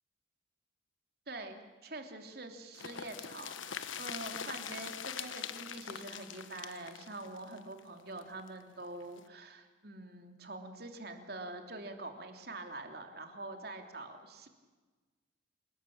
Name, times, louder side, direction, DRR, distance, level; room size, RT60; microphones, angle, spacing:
voice 1, 1.3-14.5, right 2 dB, 50° right, 5 dB, 3.2 m, -45 dB
sound 1, 2.7-8.5 8.8-8.9 9.2-9.3, left 8 dB, 85° left, 1.3 m, -43 dB
28.0 x 19.5 x 8.8 m, 1.3 s
head